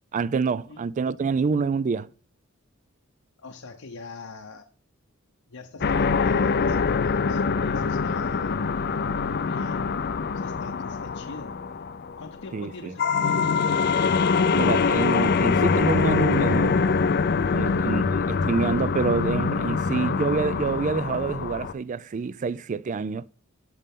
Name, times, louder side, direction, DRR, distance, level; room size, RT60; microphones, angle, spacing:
voice 1, 0.1-2.1 12.5-12.9 14.5-16.8 17.5-23.3, right 5 dB, 35° right, 0.3 m, -27 dB
voice 2, 3.4-4.7 5.5-8.5 9.1-9.9 10.3-11.6 12.2-13.6, left 3 dB, 85° left, 0.9 m, -43 dB
sound 1, 5.8-12.6 13.0-21.7, left 5 dB, 50° left, 0.5 m, -24 dB
12.5 x 5.4 x 3.7 m
head